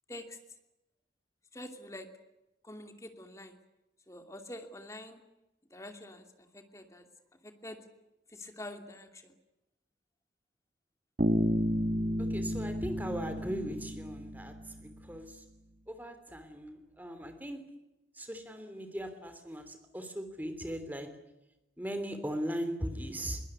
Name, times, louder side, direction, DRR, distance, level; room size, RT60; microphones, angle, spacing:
voice 1, 1.5-2.1 2.6-3.6 4.1-5.2 5.7-6.2 6.5-7.1 7.4-7.8 8.3-9.3, left 1 dB, 15° left, 6 dB, 2.7 m, -46 dB
Bass guitar, 11.2-15.0, equal, 45° right, 1.6 m, -32 dB
voice 2, 12.2-14.5 14.8-15.3 15.9-17.7 18.2-21.1 21.8-23.4, equal, 10° right, 8 dB, 3.1 m, -38 dB
22.5 x 19.5 x 9.8 m, 0.94 s
head